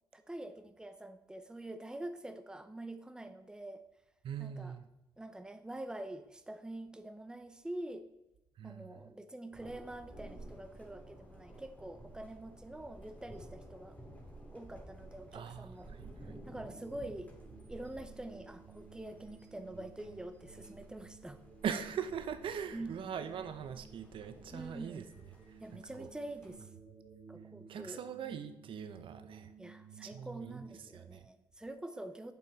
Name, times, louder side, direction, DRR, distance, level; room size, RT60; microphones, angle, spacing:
voice 1, 0.1-3.8 4.4-4.8 5.2-8.1 8.6-14.0 14.5-15.9 16.5-17.3 17.7-21.4 22.7-23.1 24.5-25.1 25.6-26.7 27.3-28.1 29.6-32.3, right 1 dB, 10° right, 9 dB, 0.8 m, -46 dB
voice 2, 4.2-4.9 8.6-9.1 15.3-16.3 21.6-25.0 25.5-26.1 27.7-29.5 30.0-30.7 30.9-31.3, right 8 dB, 60° right, 10 dB, 0.7 m, -41 dB
Thunder, 9.5-26.6, right 1 dB, 15° left, 2.7 m, -54 dB
sound 1, 16.0-30.8, right 6 dB, 40° right, 2.3 m, -56 dB
8.0 x 6.9 x 4.0 m, 0.93 s
supercardioid pair, 60°, 10 cm